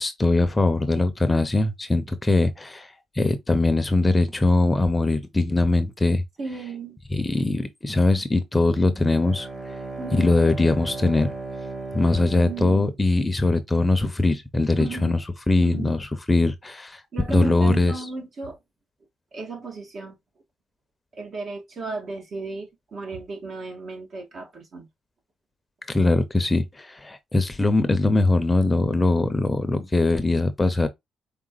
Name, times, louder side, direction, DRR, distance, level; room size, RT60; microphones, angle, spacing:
voice 1, 0.0-2.9 3.2-6.2 7.1-9.5 10.1-11.3 11.9-15.2 15.5-17.0 17.3-17.9 25.9-30.9, left 2 dB, 20° left, 0.8 m, -21 dB
voice 2, 6.4-7.0 10.0-10.4 12.4-12.9 14.8-15.2 15.6-15.9 17.1-18.6 19.3-20.2 21.1-24.9, right 4 dB, 55° right, 2.0 m, -35 dB
Bowed string instrument, 8.9-13.5, right 3 dB, 20° right, 1.3 m, -36 dB
5.1 x 3.5 x 2.4 m
cardioid pair, 90°, 0 cm